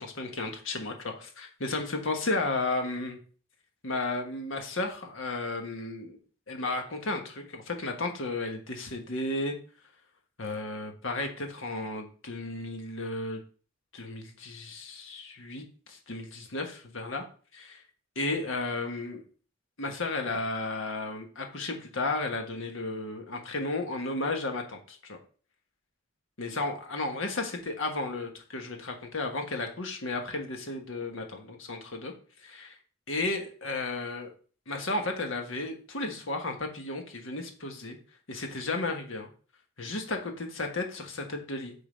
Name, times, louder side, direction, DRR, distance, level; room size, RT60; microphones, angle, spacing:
voice 1, 0.0-3.2 3.8-6.2 6.5-9.6 10.4-13.4 13.9-17.2 17.5-17.8 18.1-19.2 19.8-25.2 26.4-32.1 32.4-32.7 33.1-34.3 34.7-38.0 38.3-39.3 39.8-41.7, left 2 dB, 80° left, 4 dB, 1.4 m, -33 dB
6.9 x 3.9 x 5.2 m, 0.40 s
head